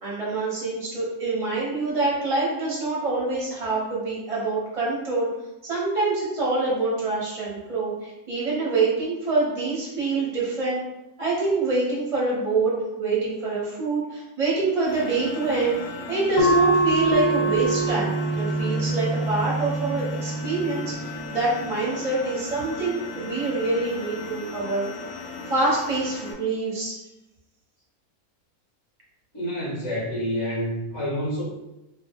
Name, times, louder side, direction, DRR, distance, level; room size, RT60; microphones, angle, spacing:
voice 1, 0.0-5.3 5.6-10.8 11.2-15.8 16.1-27.0, right 3 dB, 25° right, -6 dB, 0.9 m, -26 dB
sound 1, 14.8-26.3, left 3 dB, 85° left, 1.3 m, -37 dB
sound 2, 16.4-21.5, right 2 dB, 70° left, 0.9 m, -25 dB
voice 2, 29.3-31.4, equal, 20° left, -7 dB, 0.9 m, -28 dB
3.0 x 2.1 x 3.4 m, 0.95 s
omnidirectional pair, 1.5 m